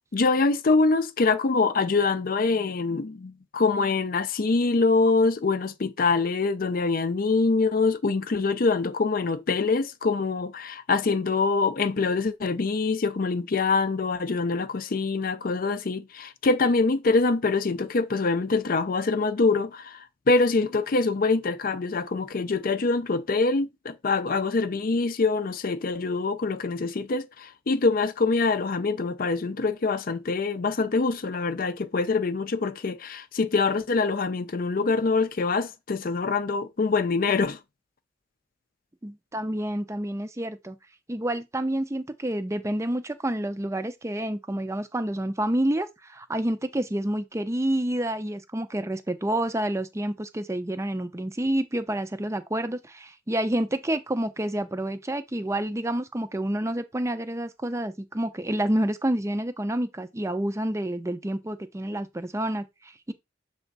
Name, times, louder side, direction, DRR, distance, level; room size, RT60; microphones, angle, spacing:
voice 1, 0.1-37.6, left 3 dB, 50° left, 0.5 m, -24 dB
voice 2, 39.0-40.8 41.1-63.1, right 1 dB, 15° right, 0.5 m, -28 dB
6.9 x 3.3 x 4.0 m
head